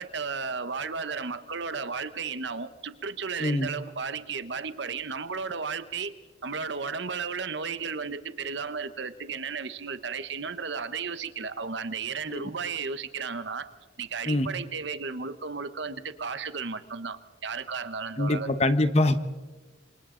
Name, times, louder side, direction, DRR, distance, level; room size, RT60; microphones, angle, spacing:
voice 1, 0.0-6.1 6.4-13.7 14.0-18.7, right 5 dB, 60° right, 1.0 m, -34 dB
voice 2, 18.2-19.2, left 1 dB, 30° left, 1.0 m, -24 dB
28.0 x 26.0 x 3.9 m
head